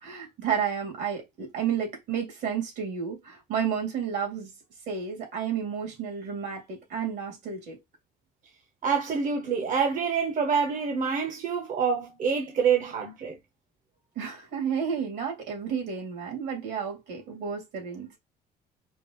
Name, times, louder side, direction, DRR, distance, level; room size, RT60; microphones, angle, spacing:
voice 1, 0.0-4.5 4.9-7.8 14.2-18.2, right 7 dB, 75° right, 2.5 m, -31 dB
voice 2, 8.8-13.4, right 6 dB, 50° right, 0.9 m, -26 dB
5.2 x 2.5 x 3.0 m
cardioid pair, 110°, 17 cm